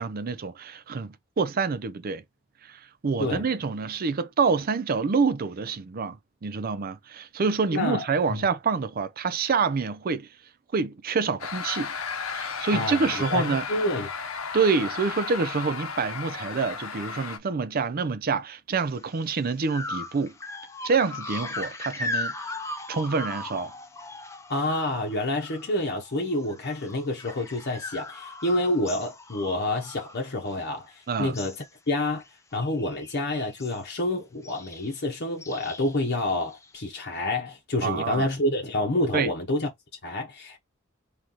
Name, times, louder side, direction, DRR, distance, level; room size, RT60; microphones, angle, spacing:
voice 1, 0.0-2.2 2.6-10.3 10.7-11.9 12.3-13.7 14.5-20.3 20.8-22.3 22.9-23.7 31.1-31.4 37.8-38.3 39.1-39.3, right 5 dB, 45° right, 0.5 m, -27 dB
voice 2, 7.7-8.0 8.3-8.4 12.7-14.1 24.5-31.6 31.9-32.2 32.5-39.7 40.0-40.6, left 1 dB, 55° left, 0.9 m, -28 dB
sound 1, 11.4-17.4, left 5 dB, 85° left, 0.8 m, -34 dB
sound 2, 19.0-19.2 19.7-25.8 26.1-30.9 31.1-31.7 32.0-32.3 32.5-33.8 34.4-34.9 35.4-36.7, left 2 dB, 15° left, 0.7 m, -38 dB
3.9 x 3.0 x 2.9 m
head